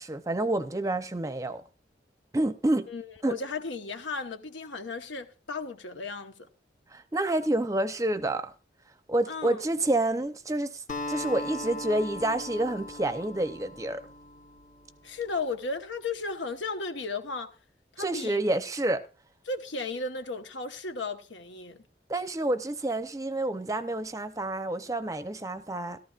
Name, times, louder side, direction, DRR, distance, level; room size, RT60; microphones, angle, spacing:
voice 1, 0.0-1.6 2.3-2.9 3.2-3.4 6.9-8.5 9.1-14.0 18.0-19.0 22.1-26.0, right 1 dB, 20° right, 0.6 m, -28 dB
voice 2, 2.9-6.5 9.3-9.6 15.0-17.6 17.9-18.4 19.5-21.9, left 3 dB, 85° left, 1.1 m, -35 dB
Acoustic guitar, 10.9-15.4, left 2 dB, 45° left, 1.3 m, -39 dB
14.5 x 13.5 x 2.4 m
head